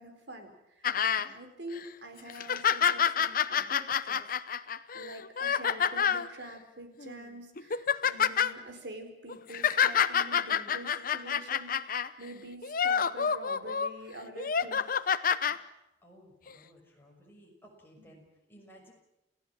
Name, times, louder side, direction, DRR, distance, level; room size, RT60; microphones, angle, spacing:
voice 1, 0.0-15.1 18.0-18.1, right 1 dB, 75° right, 6 dB, 4.2 m, -46 dB
sound 1, 0.8-1.3 1.8-1.9 2.3-6.3 7.0-7.2 7.6-8.5 9.3-12.1 12.6-13.9 14.4-15.6 16.5-16.6, left 7 dB, 55° left, 0.8 m, -28 dB
voice 2, 15.4-18.9, equal, 15° left, -1 dB, 6.2 m, -57 dB
29.5 x 15.5 x 7.5 m, 0.86 s
head